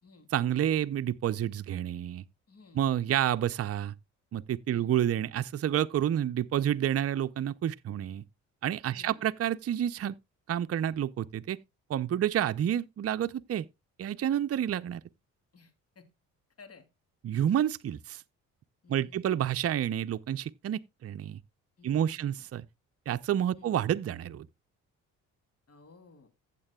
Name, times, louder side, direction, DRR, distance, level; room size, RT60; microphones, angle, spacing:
voice 1, 0.3-2.2 2.8-3.9 4.3-8.2 8.6-10.1 10.5-11.6 11.9-13.7 14.0-15.0 17.2-18.2 18.9-21.4 21.8-22.6 23.1-24.5, right 10 dB, 45° right, 0.6 m, -29 dB
voice 2, 2.5-2.8 4.7-4.9 8.9-9.3 15.5-16.1 16.6-16.9 18.8-19.4 21.8-22.5 23.5-23.7 25.7-26.3, left 4 dB, 45° left, 3.0 m, -55 dB
15.0 x 7.5 x 2.3 m
supercardioid pair, 70°, 35 cm